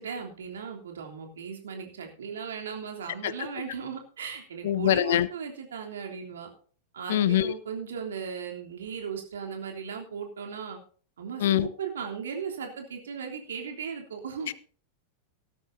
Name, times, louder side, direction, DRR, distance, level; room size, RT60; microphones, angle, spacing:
voice 1, 0.0-6.5 6.9-10.8 11.2-14.5, right 6 dB, 65° right, 3.2 m, -37 dB
voice 2, 4.6-5.3 7.1-7.5 11.4-11.7 14.5-14.6, left 12 dB, 60° left, 0.7 m, -23 dB
17.5 x 13.0 x 2.7 m
figure-of-eight pair, 90°, 0 cm